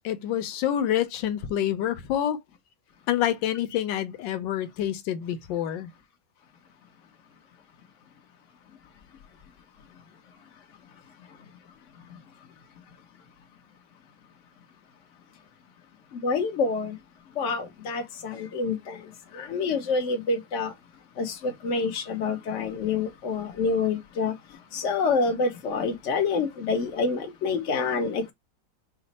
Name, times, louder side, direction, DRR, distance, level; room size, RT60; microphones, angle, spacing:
voice 1, 0.0-2.4 3.1-5.9, left 11 dB, 85° left, 1.3 m, -27 dB
voice 2, 16.1-17.0 17.4-19.0 19.3-20.7 21.2-24.3 24.7-28.3, left 4 dB, 50° left, 1.1 m, -27 dB
4.9 x 2.1 x 4.1 m
omnidirectional pair, 2.0 m